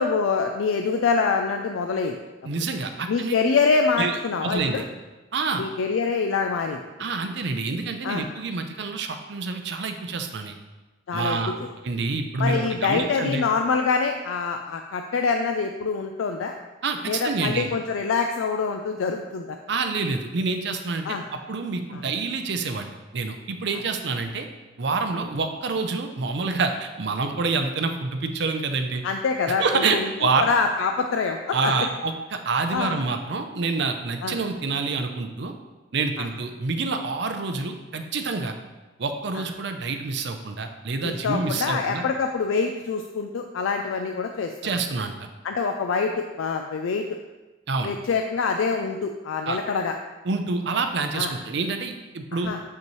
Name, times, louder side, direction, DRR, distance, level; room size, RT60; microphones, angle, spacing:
voice 1, 0.0-2.2 3.1-4.8 5.6-6.8 8.0-8.2 11.1-11.7 12.4-16.5 17.1-19.6 21.0-21.2 21.9-22.0 29.0-30.1 30.4-31.9 32.7-33.0 34.2-34.4 36.2-36.3 39.3-39.4 41.0-44.5 45.4-47.0 47.8-49.9 51.1-51.3 52.3-52.6, left 5 dB, 85° left, 5 dB, 0.4 m, -25 dB
voice 2, 2.4-3.4 4.0-4.8 5.3-5.6 7.0-10.6 11.1-11.5 11.8-13.5 16.8-17.7 19.7-24.5 24.8-29.0 29.5-30.5 31.5-35.5 35.9-38.5 39.0-42.0 44.6-45.3 47.7-47.9 49.5-49.6 50.2-52.5, right 4 dB, 60° right, 6 dB, 0.6 m, -27 dB
6.9 x 5.4 x 3.1 m, 1.2 s
head